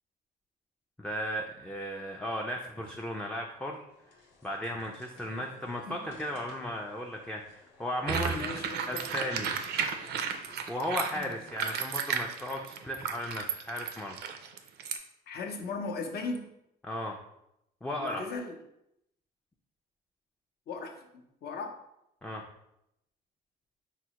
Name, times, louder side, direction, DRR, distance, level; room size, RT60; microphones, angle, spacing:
voice 1, 1.0-3.8 4.4-8.5 8.9-9.5 10.7-14.2 16.8-17.2 17.8-18.2 22.2-22.4, left 1 dB, 5° left, 0 dB, 0.3 m, -35 dB
sound 1, 3.9-11.5, left 1 dB, 80° left, 1.0 m, -54 dB
sound 2, 8.1-15.0, right 7 dB, 65° right, 0.4 m, -34 dB
voice 2, 8.3-9.3 15.3-16.5 18.0-18.6 20.7-21.0 21.4-21.8, left 3 dB, 60° left, 4 dB, 0.6 m, -37 dB
4.4 x 2.0 x 2.9 m, 0.81 s
cardioid pair, 95°, 18 cm